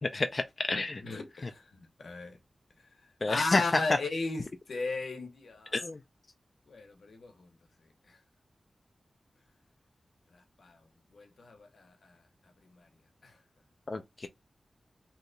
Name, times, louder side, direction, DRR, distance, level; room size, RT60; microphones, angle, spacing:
voice 1, 0.0-1.0 3.2-3.6 5.7-6.0 13.9-14.3, left 3 dB, 40° left, 0.3 m, -30 dB
voice 2, 1.0-2.4 2.8-5.9 6.7-7.5 8.0-8.2 10.3-12.9 13.2-13.4, left 3 dB, 85° left, 0.8 m, -37 dB
2.8 x 2.2 x 3.8 m
wide cardioid pair, 120°, 0 cm